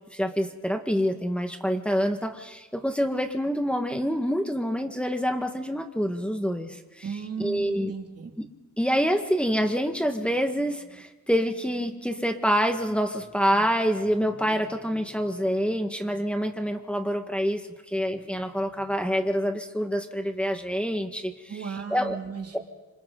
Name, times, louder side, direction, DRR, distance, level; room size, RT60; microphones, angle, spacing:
voice 1, 0.1-7.1 7.4-7.9 8.4-8.5 8.8-17.6 17.9-21.3 21.9-22.2 22.5-22.6, equal, 5° left, 4 dB, 1.8 m, -26 dB
voice 2, 7.0-8.4 21.5-22.6, right 6 dB, 50° right, 2 dB, 3.0 m, -36 dB
27.0 x 26.0 x 4.1 m, 1.2 s
wide cardioid pair, 110°, 31 cm